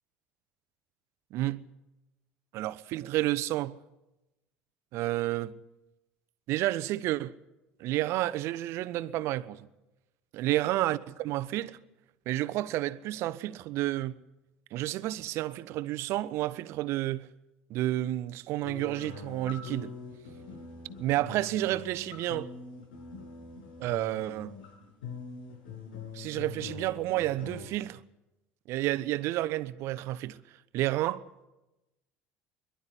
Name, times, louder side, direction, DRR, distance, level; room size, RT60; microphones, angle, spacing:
voice 1, 1.3-1.6 2.5-3.8 4.9-5.5 6.5-7.3 7.8-9.6 10.3-11.8 12.3-14.2 14.7-17.3 17.7-19.9 21.0-22.5 23.8-24.5 26.1-28.0 28.7-30.4 30.7-31.2, right 15 dB, 65° right, 1.0 m, -30 dB
sound 1, 18.6-27.6, left 5 dB, 90° left, 7.3 m, -44 dB
22.5 x 12.0 x 10.0 m
supercardioid pair, 80°, 5 cm